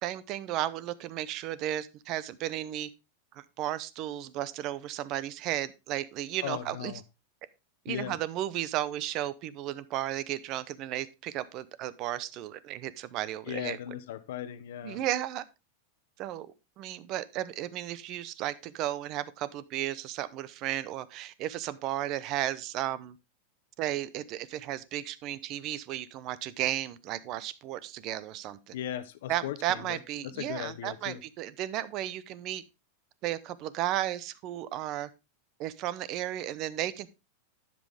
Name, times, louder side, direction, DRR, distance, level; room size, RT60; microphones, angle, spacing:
voice 1, 0.0-2.9 3.3-6.9 7.8-13.8 14.8-15.4 16.2-23.2 23.8-28.7 29.3-32.6 33.2-35.1 35.6-37.1, right 13 dB, 40° right, 17 dB, 0.8 m, -34 dB
voice 2, 6.4-7.0 7.9-8.2 13.5-15.0 28.7-30.0 30.2-31.2, left 11 dB, 75° left, 12 dB, 1.0 m, -37 dB
11.0 x 7.7 x 3.5 m, 0.26 s
supercardioid pair, 145°, 0 cm